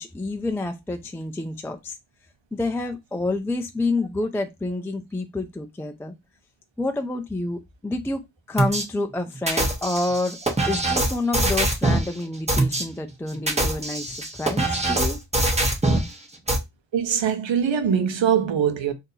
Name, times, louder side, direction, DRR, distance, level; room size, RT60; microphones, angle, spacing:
voice 1, 0.0-2.0 2.5-6.1 6.8-10.4 10.7-15.2, left 2 dB, 5° left, 0.4 m, -28 dB
sound 1, 8.6-8.8 9.5-12.1 12.5-12.8 13.3-16.1 16.5-16.6, right 2 dB, 15° right, 1.0 m, -22 dB
voice 2, 16.9-18.9, right 8 dB, 70° right, 0.9 m, -22 dB
3.8 x 2.7 x 2.7 m
wide cardioid pair, 90°, 46 cm